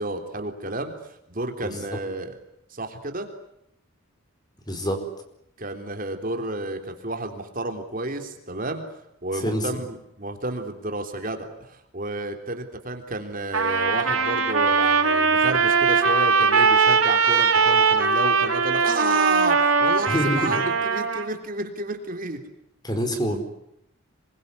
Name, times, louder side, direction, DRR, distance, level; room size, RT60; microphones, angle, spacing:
voice 1, 0.0-2.4 2.7-3.3 5.6-8.8 9.2-22.4, right 2 dB, 40° right, 6 dB, 3.5 m, -31 dB
voice 2, 4.7-5.1 9.3-9.7 20.1-20.6 22.8-23.4, equal, 20° left, 7 dB, 4.9 m, -26 dB
Trumpet, 13.5-21.3, right 5 dB, 80° right, 3.9 m, -20 dB
27.0 x 22.5 x 9.7 m, 0.78 s
head